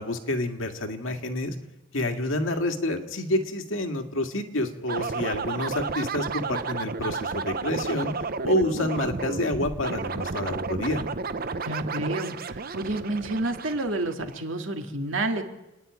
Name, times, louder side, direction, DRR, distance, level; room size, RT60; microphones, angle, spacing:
voice 1, 0.0-1.5 1.9-8.1 8.4-11.0, left 1 dB, 75° left, 5 dB, 2.0 m, -28 dB
sound 1, 4.9-14.4, right 4 dB, 45° right, 0.7 m, -32 dB
voice 2, 11.6-15.4, right 2 dB, 75° right, 4 dB, 2.2 m, -29 dB
28.0 x 10.0 x 9.5 m, 1.0 s
head